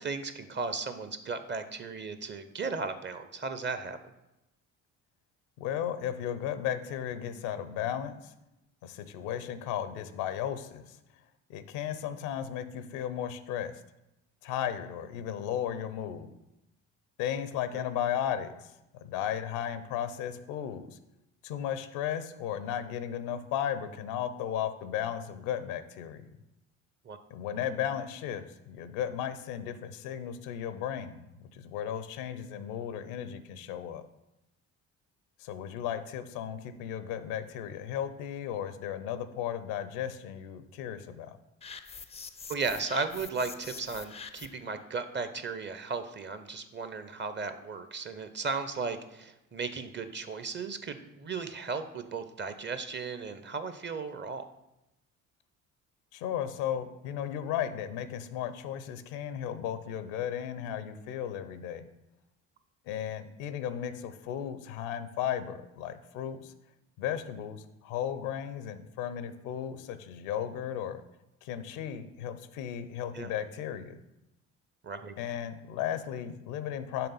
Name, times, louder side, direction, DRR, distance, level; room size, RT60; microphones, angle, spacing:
voice 1, 0.0-4.0 17.7-17.8 27.1-27.2 42.5-54.4 73.1-73.3 74.8-75.1, right 4 dB, 30° right, 10 dB, 0.6 m, -35 dB
voice 2, 5.6-8.3 8.8-11.0 11.5-13.8 14.4-16.3 17.2-18.7 19.0-21.0 21.4-26.3 27.3-34.0 35.4-41.4 56.1-61.9 62.9-66.5 67.0-71.0 71.4-74.0 75.2-77.1, left 9 dB, 75° left, 11 dB, 0.6 m, -35 dB
sound 1, 41.6-44.7, left 5 dB, 15° left, 0.4 m, -45 dB
5.7 x 3.5 x 5.5 m, 0.91 s
hypercardioid pair, 50°, 40 cm